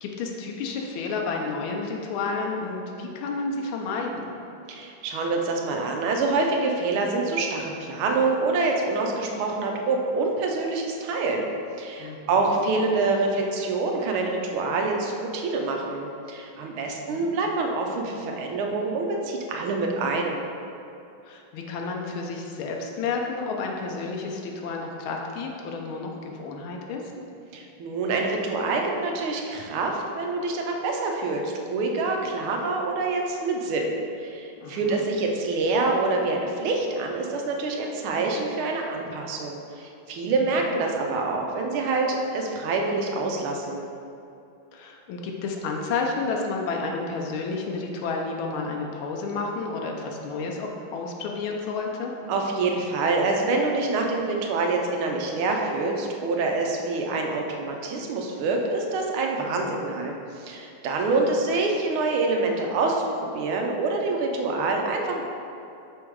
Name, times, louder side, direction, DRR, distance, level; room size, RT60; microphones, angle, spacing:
voice 1, 0.0-4.3 12.0-12.6 16.7-17.3 21.2-27.0 34.6-35.0 44.7-52.1 59.4-59.8 61.0-61.3, left 4 dB, 85° left, 1 dB, 1.5 m, -31 dB
voice 2, 4.7-11.5 11.8-20.3 27.5-33.9 34.2-43.8 52.3-65.2, right 3 dB, 90° right, 1 dB, 1.6 m, -26 dB
6.1 x 3.6 x 4.6 m, 2.6 s
omnidirectional pair, 2.3 m